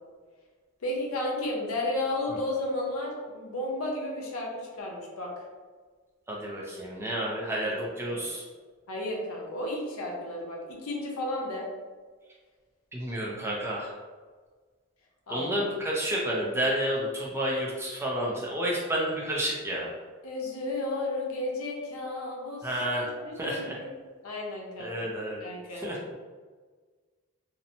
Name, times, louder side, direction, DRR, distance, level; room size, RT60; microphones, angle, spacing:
voice 1, 0.8-5.4 7.6-8.3 8.9-11.7 15.3-15.6 20.2-22.7 23.0-23.9 24.2-25.0 25.4-25.8, left 1 dB, 85° left, -2 dB, 0.6 m, -33 dB
voice 2, 6.3-8.4 12.9-13.9 15.3-19.9 22.6-23.1 23.3-23.8 24.8-25.4 25.7-26.0, right 1 dB, 10° right, -4 dB, 0.3 m, -30 dB
2.7 x 2.0 x 2.6 m, 1.5 s
head